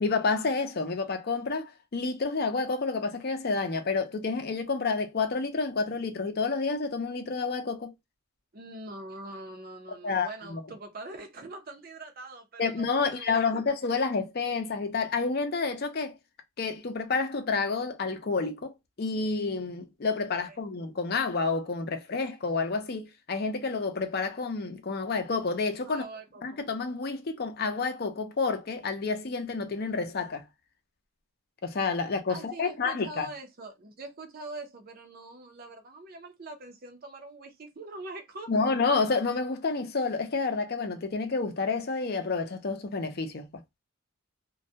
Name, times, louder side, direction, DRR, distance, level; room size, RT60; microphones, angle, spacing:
voice 1, 0.0-7.9 10.0-10.6 12.6-16.1 16.6-26.0 26.4-30.4 31.6-33.3 38.5-43.6, left 4 dB, 45° left, 0.5 m, -29 dB
voice 2, 8.5-13.6 20.5-20.6 25.8-26.4 32.3-38.7, right 2 dB, 40° right, 0.5 m, -43 dB
2.2 x 2.1 x 2.6 m
head